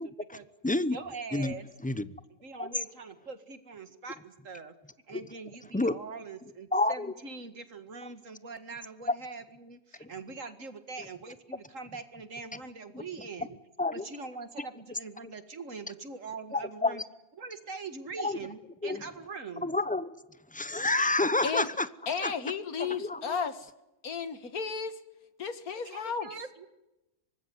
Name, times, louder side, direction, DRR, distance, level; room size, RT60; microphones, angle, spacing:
voice 1, 0.0-0.5 0.9-1.7 2.3-4.7 5.1-13.6 13.9-17.0 17.4-19.7 25.9-26.7, right 4 dB, 60° right, 2.3 m, -43 dB
voice 2, 0.6-1.0 1.3-1.5 1.8-2.1 2.6-2.7 5.1-5.2 5.7-5.9 6.7-7.1 10.0-10.1 11.0-11.1 12.9-13.0 13.8-14.0 16.5-17.0 18.2-18.4 18.8-19.0 19.6-20.1 20.5-21.9 22.2-22.3 22.9-23.5, left 2 dB, 10° left, 0.6 m, -29 dB
voice 3, 22.1-23.7 24.0-25.0 25.4-26.3, left 6 dB, 85° left, 2.2 m, -33 dB
24.5 x 20.0 x 9.7 m
omnidirectional pair, 1.5 m